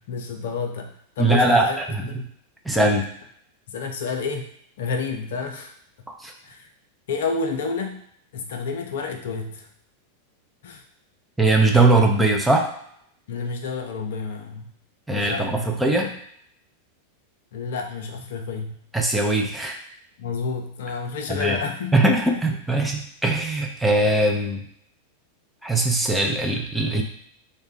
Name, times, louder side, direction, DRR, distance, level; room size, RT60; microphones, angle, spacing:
voice 1, 0.0-1.8 2.1-2.3 3.7-5.7 6.4-6.7 7.1-8.0 8.3-9.7 10.6-10.8 13.3-14.7 15.1-16.2 17.5-18.8 20.2-22.0 22.4-22.5, left 4 dB, 60° left, 4 dB, 0.4 m, -30 dB
voice 2, 1.2-2.1 2.7-3.1 6.2-6.3 11.4-12.7 15.1-16.1 18.9-19.8 21.3-21.6 21.9-24.6 25.6-27.0, right 2 dB, 5° right, 0 dB, 0.5 m, -20 dB
3.5 x 2.1 x 3.6 m, 0.68 s
figure-of-eight pair, 90°, 0 cm